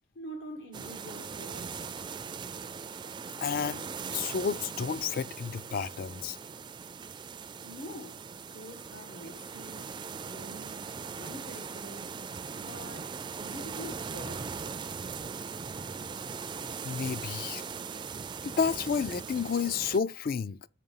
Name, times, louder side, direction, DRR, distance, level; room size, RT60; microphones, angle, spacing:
voice 1, 0.1-1.8 7.6-8.2 8.5-10.0 10.3-12.2 12.5-14.6, equal, 75° left, 1.8 m, -46 dB
sound 1, 0.7-20.0, right 5 dB, 25° right, 0.3 m, -40 dB
voice 2, 3.4-3.8 4.1-6.4 16.8-17.7 18.4-20.6, left 6 dB, 50° left, 0.4 m, -31 dB
6.7 x 5.3 x 5.6 m
head